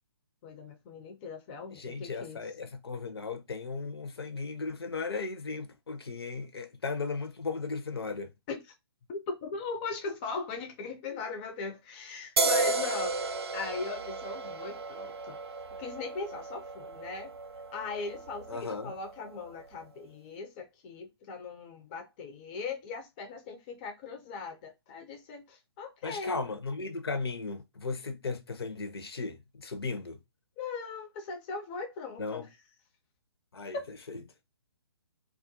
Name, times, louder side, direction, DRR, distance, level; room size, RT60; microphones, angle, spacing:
voice 1, 0.4-2.4 8.5-8.6 9.1-15.4 15.8-17.3 17.7-26.4 30.6-32.5 33.7-33.8, left 4 dB, 20° left, 0.3 m, -39 dB
voice 2, 1.7-8.3 18.5-18.9 26.0-30.2 32.2-32.5 33.5-33.8 34.1-34.2, left 4 dB, 65° left, 0.6 m, -36 dB
sound 1, 12.4-19.7, right 3 dB, 70° right, 0.5 m, -34 dB
2.3 x 2.2 x 2.6 m
figure-of-eight pair, 125°, 14 cm